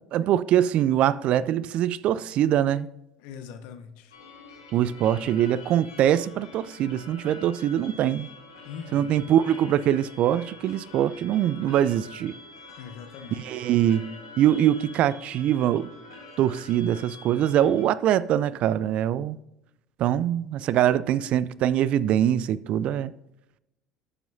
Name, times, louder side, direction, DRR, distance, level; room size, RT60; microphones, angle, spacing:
voice 1, 0.1-2.9 4.7-8.3 8.9-12.3 13.4-14.1 14.4-15.9 16.4-19.4 20.0-23.1, right 11 dB, 55° right, 0.4 m, -23 dB
voice 2, 3.2-4.2 8.6-9.1 12.8-13.4, left 7 dB, 65° left, 0.9 m, -41 dB
sound 1, 4.1-17.8, left 3 dB, 85° left, 1.3 m, -46 dB
11.0 x 7.5 x 2.7 m
hypercardioid pair, 65°, 2 cm